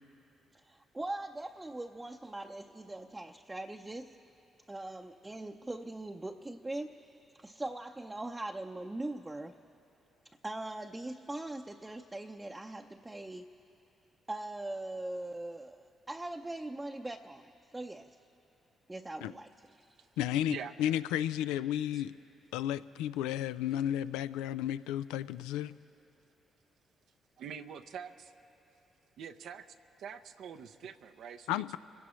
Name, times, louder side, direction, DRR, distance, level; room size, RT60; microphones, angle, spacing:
voice 1, 0.6-4.2 4.7-7.1 7.4-9.6 10.4-13.5 14.3-18.2 18.9-19.5 19.8-19.9, right 2 dB, 20° right, 2 dB, 0.7 m, -41 dB
voice 2, 20.2-22.1 22.5-25.7 31.5-31.8, left 11 dB, 85° left, 14 dB, 0.3 m, -33 dB
voice 3, 27.4-28.3 29.2-29.7 30.0-31.8, right 7 dB, 70° right, 7 dB, 0.6 m, -44 dB
27.5 x 16.5 x 3.1 m, 2.9 s
hypercardioid pair, 50°, 0 cm